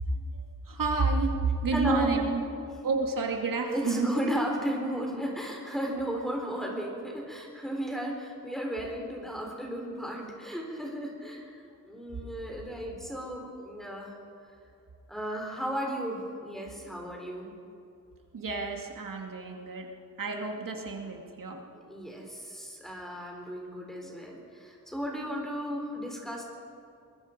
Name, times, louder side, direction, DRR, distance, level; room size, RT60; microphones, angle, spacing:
voice 1, 0.1-2.4 2.8-4.1 5.9-6.0 12.7-12.8 13.0-13.1 16.8-17.3 18.3-19.9 20.2-21.9 22.2-22.3, right 3 dB, 75° right, 1 dB, 2.4 m, -31 dB
voice 2, 1.7-2.7 3.7-14.1 15.1-17.5 21.7-26.4, equal, ahead, 0 dB, 3.9 m, -34 dB
23.0 x 22.0 x 5.2 m, 2.5 s
wide cardioid pair, 140°, 33 cm